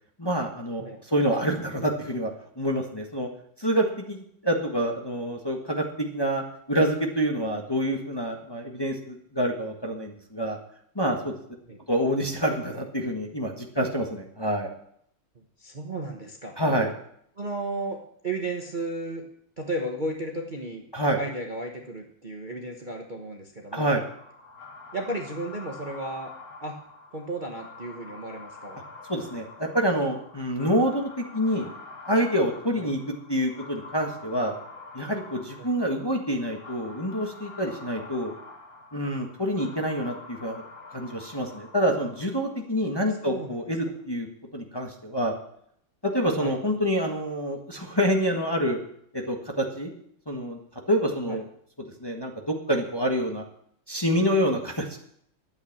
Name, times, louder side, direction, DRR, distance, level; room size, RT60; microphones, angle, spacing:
voice 1, 0.2-0.8 1.1-2.3 2.6-3.3 3.6-6.4 6.7-10.6 10.9-11.3 11.9-14.7 16.6-16.9 20.9-21.2 23.7-24.0 29.1-31.7 32.1-33.0 33.3-34.5 34.9-38.3 38.9-40.6 40.9-44.3 44.5-45.3 46.1-48.8 49.1-49.9 50.3-50.6 50.9-51.4 52.0-53.4 53.9-55.0, equal, 15° left, 1 dB, 1.3 m, -27 dB
voice 2, 15.6-16.5 17.4-19.2 19.6-20.8 21.2-23.9 24.9-26.3 26.6-26.8 27.1-28.8 32.8-32.9 35.6-35.7 43.2-43.6 46.4-46.5 51.3-51.4, right 2 dB, 30° right, 1 dB, 1.1 m, -34 dB
sound 1, 23.7-42.6, left 3 dB, 50° left, 2.5 m, -46 dB
11.5 x 8.9 x 7.3 m, 0.68 s
omnidirectional pair, 2.1 m